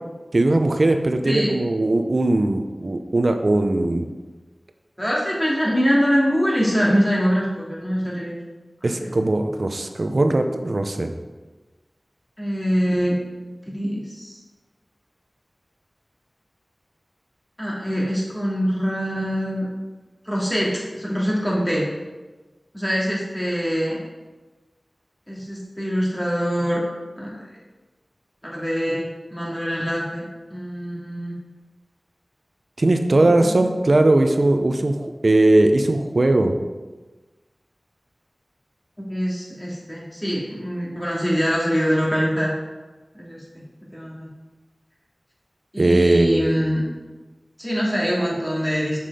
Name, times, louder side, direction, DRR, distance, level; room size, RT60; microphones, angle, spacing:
voice 1, 0.3-4.1 8.8-11.1 32.8-36.6 45.8-46.7, right 2 dB, 65° right, 6 dB, 0.7 m, -19 dB
voice 2, 5.0-8.3 8.8-9.1 12.4-13.1 13.7-14.4 17.6-19.6 20.2-21.8 22.7-24.0 25.3-26.8 27.2-27.4 28.4-29.0 29.3-30.2 30.5-31.3 33.2-33.7 39.1-42.5 43.1-43.4 43.9-44.3 45.7-46.8 47.6-49.1, equal, 15° left, -5 dB, 2.8 m, -24 dB
7.2 x 5.9 x 5.0 m, 1.2 s
wide cardioid pair, 50°, 0 cm